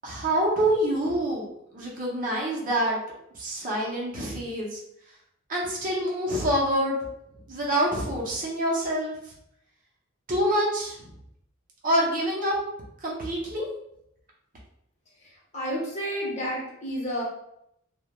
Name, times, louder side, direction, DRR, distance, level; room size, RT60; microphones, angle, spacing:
voice 1, 0.0-3.0 3.3-4.8 5.5-7.0 7.5-9.1 10.3-11.1 11.8-12.5 13.0-13.7, right 1 dB, 40° right, -3 dB, 0.6 m, -26 dB
voice 2, 15.5-17.2, equal, 35° left, -5 dB, 0.8 m, -30 dB
2.3 x 2.1 x 2.9 m, 0.77 s
head